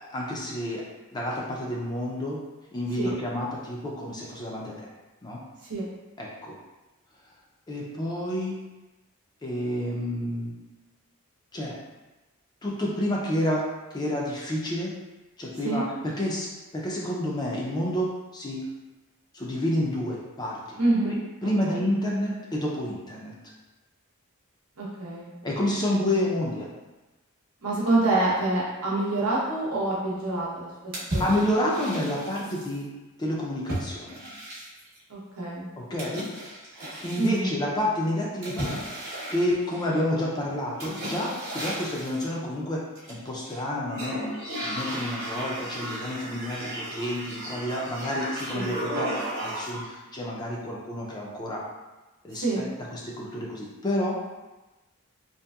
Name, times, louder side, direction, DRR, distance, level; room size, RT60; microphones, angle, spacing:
voice 1, 0.1-0.8 1.1-2.4 2.7-4.9 5.2-5.4 6.2-6.6 7.2-7.3 7.7-8.6 9.4-10.5 11.5-11.8 12.6-13.6 13.9-14.9 15.4-18.6 19.3-20.8 21.0-21.1 21.4-23.3 25.4-26.7 31.2-32.9 33.2-34.2 35.8-36.2 36.8-38.7 39.3-42.8 43.1-44.3 44.6-51.6 52.2-54.3, left 1 dB, 20° left, -3 dB, 0.3 m, -29 dB
voice 2, 20.8-21.2 21.6-21.7 24.8-25.3 27.6-30.7 31.1-31.3 35.1-35.7 37.2-37.5 48.5-48.7 52.3-52.6, right 2 dB, 80° right, -6 dB, 0.8 m, -26 dB
sound 1, 30.9-32.7 33.7-35.0 36.0-37.4 38.4-40.1 40.8-42.3 43.0-43.6 43.9-49.9, right 1 dB, 45° right, 0.8 m, -35 dB
2.8 x 2.5 x 2.3 m, 1.1 s
head